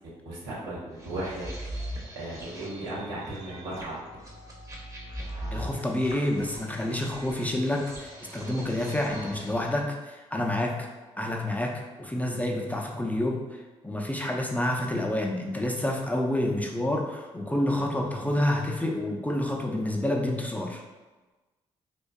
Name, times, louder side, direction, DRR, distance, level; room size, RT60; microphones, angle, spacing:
voice 1, 0.3-1.5 2.1-4.0, right 1 dB, 85° right, -8 dB, 0.8 m, -35 dB
sound 1, 1.0-9.8, equal, 20° right, 0.7 m, -41 dB
voice 2, 5.5-10.9 11.2-20.8, left 1 dB, 10° left, 0 dB, 0.4 m, -28 dB
2.5 x 2.2 x 2.2 m, 1.2 s
hypercardioid pair, 40°, 16 cm